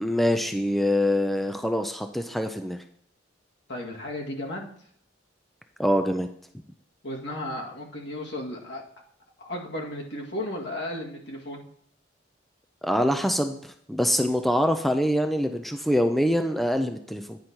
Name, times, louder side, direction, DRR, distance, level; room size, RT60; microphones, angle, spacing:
voice 1, 0.0-2.8 5.8-6.3 12.8-17.4, equal, ahead, 6 dB, 0.5 m, -24 dB
voice 2, 3.7-4.7 7.0-8.8 9.4-11.6, left 1 dB, 70° left, -1 dB, 2.0 m, -34 dB
9.5 x 5.0 x 4.5 m, 0.64 s
head